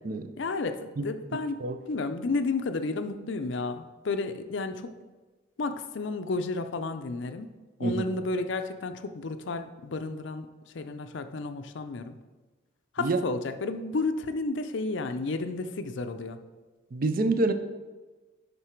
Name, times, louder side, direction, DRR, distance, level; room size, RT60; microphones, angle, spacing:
voice 1, 0.4-4.9 5.6-7.5 7.8-10.5 10.7-12.2 12.9-16.4, left 3 dB, 65° left, 9 dB, 0.5 m, -32 dB
voice 2, 16.9-17.5, right 2 dB, 45° right, 9 dB, 0.4 m, -26 dB
10.5 x 4.0 x 4.5 m, 1.3 s
head